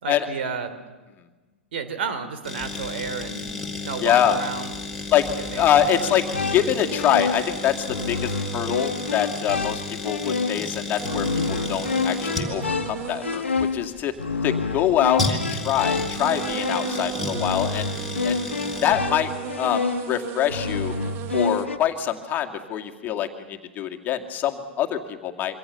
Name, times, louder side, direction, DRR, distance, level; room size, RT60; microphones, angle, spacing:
voice 1, 0.0-0.7 1.7-3.5 3.8-4.7 5.5-6.1, right 5 dB, 60° right, 10 dB, 3.2 m, -31 dB
sound 1, 2.4-18.9, left 3 dB, ahead, 3.8 m, -33 dB
voice 2, 4.0-4.4 5.1-5.3 5.5-6.2 6.5-14.1 14.4-17.9 18.2-18.4 18.8-19.3 19.6-20.9 21.3-25.6, left 10 dB, 30° left, 4 dB, 2.2 m, -24 dB
sound 2, 4.8-4.9 5.2-10.2 10.6-15.0 15.8-15.9 16.1-21.7, right 12 dB, 35° right, 1.3 m, -37 dB
sound 3, 6.1-21.8, left 4 dB, 80° left, 1.4 m, -28 dB
26.0 x 24.5 x 7.0 m, 1.3 s
figure-of-eight pair, 105°, 6 cm